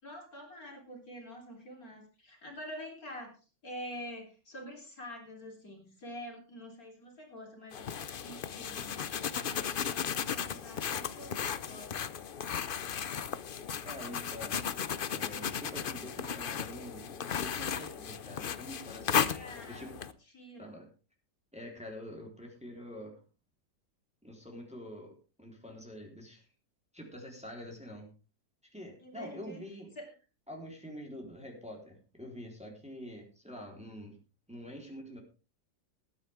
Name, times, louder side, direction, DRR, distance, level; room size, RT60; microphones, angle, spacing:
voice 1, 0.0-3.4 3.6-12.1 19.3-20.0 20.3-20.8 29.0-29.6 30.0-30.1, equal, 50° left, 1 dB, 4.0 m, -47 dB
sound 1, 7.7-20.1, left 7 dB, 85° left, 0.4 m, -35 dB
voice 2, 13.8-14.6 15.1-19.3 19.7-20.0 20.6-20.9 21.5-23.2 24.2-26.4 26.9-28.1 28.7-29.9 30.5-34.2 34.5-35.2, equal, 5° right, 0 dB, 3.8 m, -46 dB
20.0 x 9.8 x 3.6 m, 0.33 s
omnidirectional pair, 1.9 m